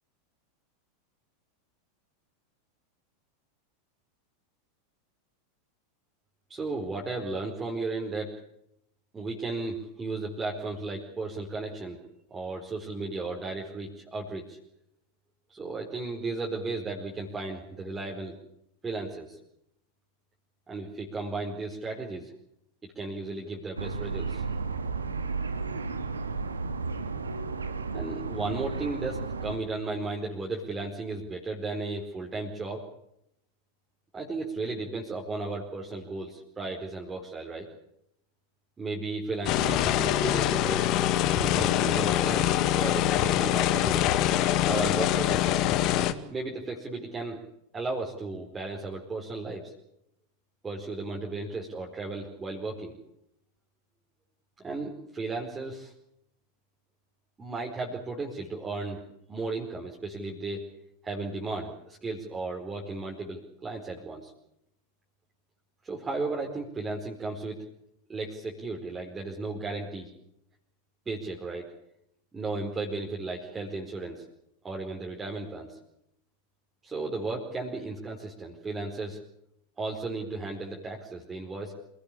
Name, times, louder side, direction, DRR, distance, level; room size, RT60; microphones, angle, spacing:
voice 1, 6.5-8.3 9.1-12.0 12.3-14.6 15.5-18.3 18.8-19.4 20.7-22.3 22.9-24.4 27.9-32.9 34.1-37.7 38.8-40.9 41.3-44.1 44.7-45.6 46.3-47.4 47.7-49.7 50.6-53.0 54.6-55.9 57.4-59.0 59.3-60.6 61.0-64.3 65.8-67.6 68.1-70.1 71.1-71.7 72.3-74.2 74.6-75.8 76.8-79.2 79.8-81.7, right 3 dB, 15° right, -1 dB, 4.6 m, -35 dB
sound 1, 23.8-29.6, right 4 dB, 75° right, 2.4 m, -33 dB
sound 2, 39.4-46.1, left 12 dB, 40° left, 1.9 m, -24 dB
27.5 x 18.5 x 8.7 m, 0.77 s
figure-of-eight pair, 85°, 0 cm